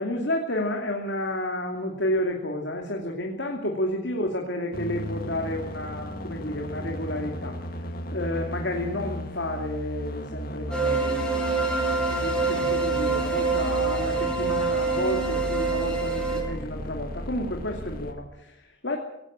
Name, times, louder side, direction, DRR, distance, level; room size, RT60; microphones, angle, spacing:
voice 1, 0.0-7.6 8.1-11.7 12.2-19.0, left 1 dB, 65° left, 1 dB, 2.8 m, -31 dB
sound 1, 4.7-18.1, equal, 50° left, 2.1 m, -35 dB
sound 2, 10.7-16.4, right 4 dB, 5° left, 5.5 m, -26 dB
19.0 x 16.0 x 8.9 m, 0.87 s
head